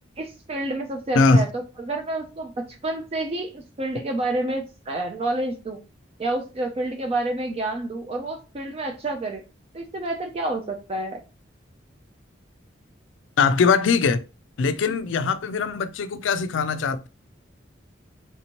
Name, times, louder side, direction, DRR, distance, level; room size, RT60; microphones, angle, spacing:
voice 1, 0.2-5.8 6.2-9.4 9.7-11.2, right 2 dB, 30° right, 0.3 m, -29 dB
voice 2, 13.4-14.2 14.6-17.1, left 4 dB, 75° left, 0.4 m, -21 dB
3.4 x 2.9 x 2.8 m
head